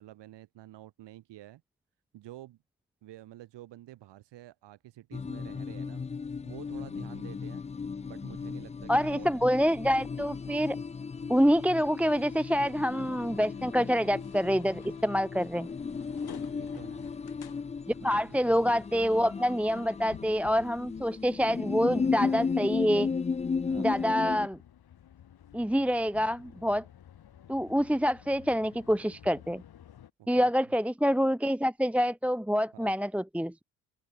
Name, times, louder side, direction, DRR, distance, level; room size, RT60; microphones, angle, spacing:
voice 1, 0.0-1.6 2.1-2.6 3.0-6.0 6.4-7.6 8.0-9.3 16.5-17.1 18.0-18.5 23.6-23.9 30.2-30.7 32.7-32.9, right 14 dB, 65° right, 6.6 m, -49 dB
sound 1, 5.1-24.5, left 5 dB, 15° left, 0.6 m, -35 dB
voice 2, 8.9-10.8 11.3-15.7 18.0-23.1 23.8-24.6 25.5-26.8 27.5-29.6 30.3-33.6, equal, 5° right, 1.1 m, -26 dB
sound 2, 12.1-30.1, left 10 dB, 55° left, 5.8 m, -54 dB
open air
hypercardioid pair, 55°, 45 cm